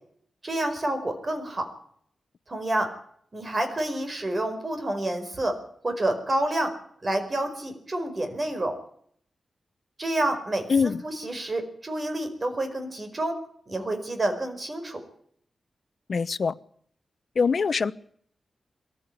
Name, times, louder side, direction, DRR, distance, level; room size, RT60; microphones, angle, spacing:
voice 1, 0.4-1.7 2.5-2.9 3.3-5.6 5.8-6.7 7.0-8.8 10.0-13.4 13.7-15.0, right 1 dB, 30° right, 6 dB, 4.9 m, -28 dB
voice 2, 10.7-11.0 16.1-16.5 17.4-17.9, left 5 dB, 55° left, 15 dB, 0.9 m, -23 dB
22.0 x 15.0 x 10.0 m, 0.65 s
wide cardioid pair, 130°, 0 cm